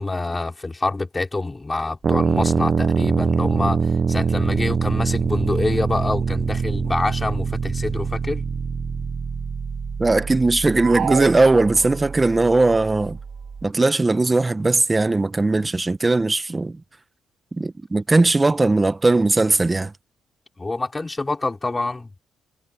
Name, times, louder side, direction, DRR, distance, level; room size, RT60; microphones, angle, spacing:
voice 1, 0.0-8.4 20.6-22.2, left 2 dB, 20° left, 4.3 m, -26 dB
sound 1, 2.0-13.7, right 5 dB, 40° right, 0.6 m, -24 dB
voice 2, 10.0-13.2 13.6-16.8 17.6-19.9, right 2 dB, 20° right, 1.1 m, -19 dB
sound 2, 10.8-12.3, right 8 dB, 60° right, 1.8 m, -29 dB
cardioid pair, 90°, 0 cm